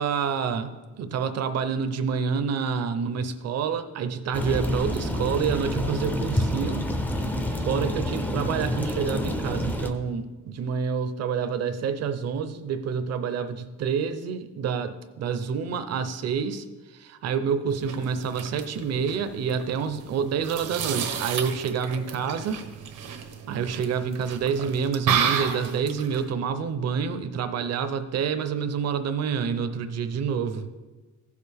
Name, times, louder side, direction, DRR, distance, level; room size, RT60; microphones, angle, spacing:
voice 1, 0.0-6.9 7.5-16.6 16.9-22.6 23.5-30.7, right 6 dB, 55° right, 10 dB, 0.7 m, -28 dB
sound 1, 4.3-9.9, left 1 dB, 5° left, 0.5 m, -28 dB
sound 2, 17.7-26.3, right 7 dB, 85° right, 1.1 m, -32 dB
15.5 x 6.6 x 3.5 m, 1.3 s
cardioid pair, 170°, 31 cm